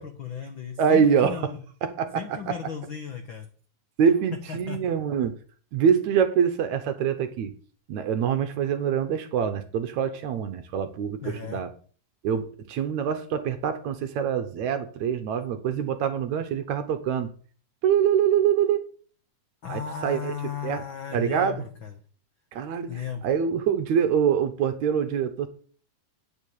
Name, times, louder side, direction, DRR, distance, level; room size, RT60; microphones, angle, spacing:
voice 1, 0.0-1.6 2.1-3.5 4.5-4.8 11.2-11.6 19.6-21.9 22.9-23.3, left 7 dB, 85° left, 6 dB, 1.1 m, -36 dB
voice 2, 0.8-1.5 1.8-2.6 4.0-5.4 5.7-7.5 7.9-11.7 12.2-17.3 17.8-18.8 19.7-20.3 20.6-20.8 21.1-21.6 22.5-22.9 23.2-25.5, right 7 dB, 70° right, 8 dB, 2.0 m, -25 dB
9.2 x 6.9 x 8.5 m, 0.43 s
omnidirectional pair, 4.0 m